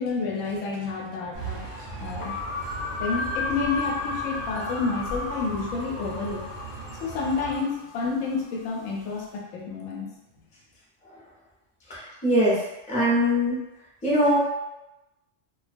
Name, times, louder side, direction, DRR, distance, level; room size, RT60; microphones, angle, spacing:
voice 1, 0.0-2.4 3.0-6.4 7.0-10.1, left 4 dB, 90° left, -1 dB, 1.0 m, -30 dB
sound 1, 1.3-7.6, right 1 dB, 40° right, 0.7 m, -36 dB
sound 2, 2.2-8.6, left 3 dB, 65° left, 0.7 m, -35 dB
voice 2, 11.9-12.6 12.9-13.6 14.0-14.4, equal, 10° left, -8 dB, 0.5 m, -22 dB
2.2 x 2.2 x 2.5 m, 0.96 s
omnidirectional pair, 1.3 m